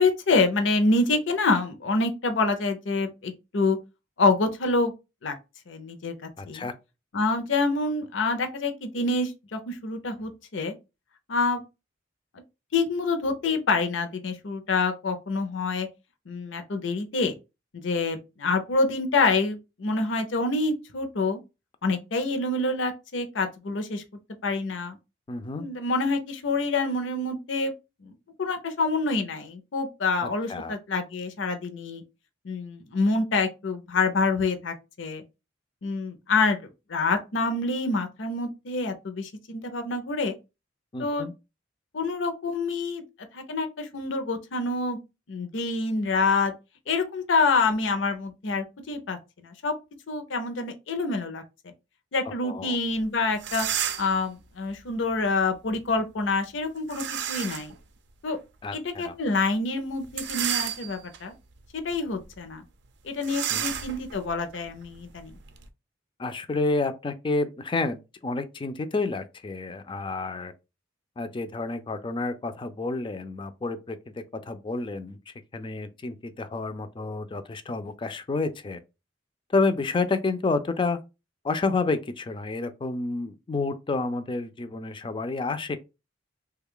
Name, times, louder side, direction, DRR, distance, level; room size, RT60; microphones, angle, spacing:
voice 1, 0.0-3.8 4.2-4.9 5.2-5.4 5.7-6.7 7.1-10.7 11.3-11.6 12.7-15.9 16.3-17.3 17.8-21.4 21.8-24.0 24.4-25.0 25.6-27.7 28.0-28.1 28.4-32.0 32.4-35.2 35.8-40.4 41.0-41.3 41.9-43.0 43.3-45.0 45.3-46.5 46.9-49.7 50.1-51.4 52.1-53.7 54.0-57.7 58.2-58.4 58.7-61.3 61.7-62.6 63.0-65.4, left 3 dB, 70° left, 0.6 m, -27 dB
voice 2, 6.4-6.7 25.3-25.7 30.2-30.7 40.9-41.3 52.4-52.8 58.6-59.1 63.5-63.7 66.2-70.5 71.2-74.0 74.3-78.8 79.5-81.0 81.4-85.8, left 3 dB, 25° left, 0.4 m, -29 dB
sound 1, 53.0-53.1 53.4-54.2 56.9-57.8 58.3-58.4 60.0-61.2 61.7-62.0 62.2-62.3 63.2-65.7, right 9 dB, 65° right, 0.5 m, -32 dB
3.2 x 2.3 x 3.6 m
head